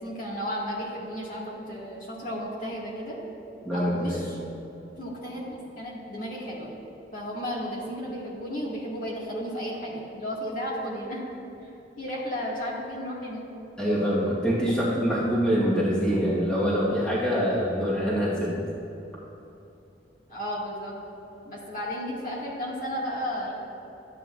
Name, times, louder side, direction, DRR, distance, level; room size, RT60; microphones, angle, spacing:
voice 1, 0.0-3.2 3.7-4.4 5.0-6.7 7.1-11.2 11.6-11.7 12.0-13.4 14.7-15.1 20.3-20.9 21.4-23.5, equal, 50° left, -6 dB, 2.0 m, -33 dB
voice 2, 3.6-4.2 13.8-18.6, equal, 5° left, -8 dB, 1.5 m, -25 dB
13.0 x 8.9 x 2.6 m, 2.9 s
head